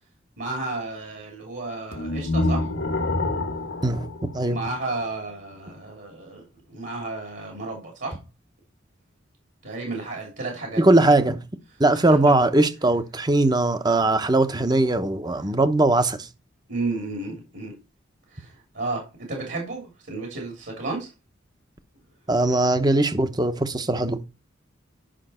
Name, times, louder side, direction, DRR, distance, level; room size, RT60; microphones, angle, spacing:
voice 1, 0.4-2.7 4.4-8.2 9.6-11.0 11.9-12.1 16.7-17.7 18.3-21.1, right 3 dB, 60° right, 3.2 m, -32 dB
sound 1, 1.9-5.1, left 2 dB, 75° left, 1.4 m, -27 dB
voice 2, 10.8-11.4 11.8-16.3 22.3-24.2, right 2 dB, 20° right, 0.9 m, -20 dB
10.0 x 5.9 x 4.3 m
head